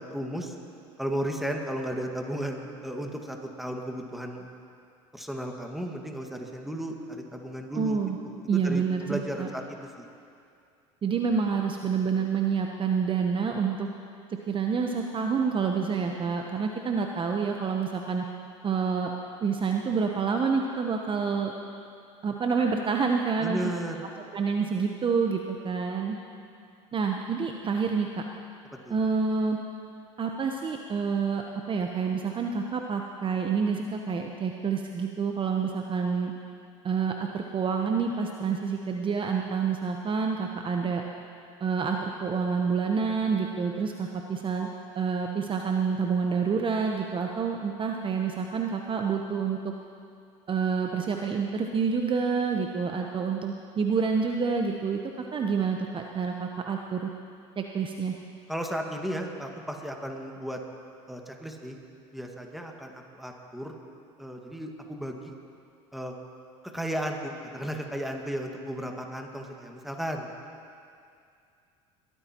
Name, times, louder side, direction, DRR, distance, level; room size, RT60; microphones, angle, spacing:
voice 1, 0.1-0.5 1.0-4.5 5.1-10.0 23.4-24.0 28.9-29.0 58.5-60.6 61.1-61.8 62.1-63.7 64.2-65.3 65.9-66.1 66.7-70.3, equal, ahead, 2 dB, 1.9 m, -34 dB
voice 2, 7.8-8.2 8.5-9.5 11.0-13.9 14.5-18.2 18.6-19.1 19.4-21.5 22.2-23.6 24.3-26.2 26.9-28.2 28.9-29.6 30.2-36.3 36.8-41.0 41.6-44.7 44.9-49.7 50.5-55.0 55.3-57.1 57.6-58.2, right 5 dB, 30° right, 2 dB, 1.0 m, -28 dB
22.0 x 14.0 x 3.0 m, 2.4 s
hypercardioid pair, 75°, 16 cm